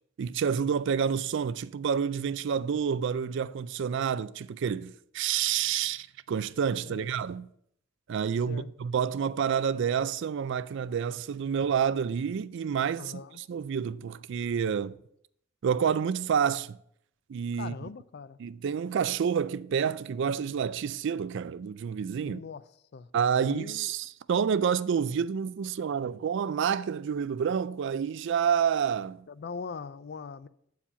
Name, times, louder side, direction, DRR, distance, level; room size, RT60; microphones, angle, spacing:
voice 1, 0.2-7.5 8.1-15.0 15.6-16.8 17.3-17.7 18.4-22.4 23.1-29.2, right 7 dB, 60° right, 0.3 m, -29 dB
voice 2, 13.0-13.4 17.6-18.4 22.2-22.6 22.9-23.1 23.4-23.9 29.3-30.5, left 5 dB, 50° left, 0.4 m, -41 dB
8.7 x 4.7 x 6.7 m
head